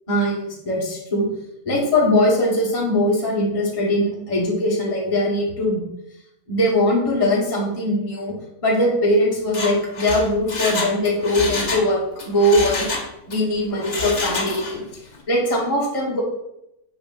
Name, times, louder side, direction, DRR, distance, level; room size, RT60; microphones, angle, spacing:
voice 1, 0.1-1.3 1.6-5.8 6.5-8.3 8.6-12.0 12.3-12.9 13.3-14.8 15.3-16.2, left 1 dB, 20° left, -4 dB, 1.3 m, -20 dB
Mechanisms, 9.4-11.9 12.2-13.4 13.8-14.8 15.1-15.2, left 3 dB, 55° left, 0.4 m, -27 dB
6.6 x 5.5 x 2.6 m, 0.85 s
omnidirectional pair, 2.1 m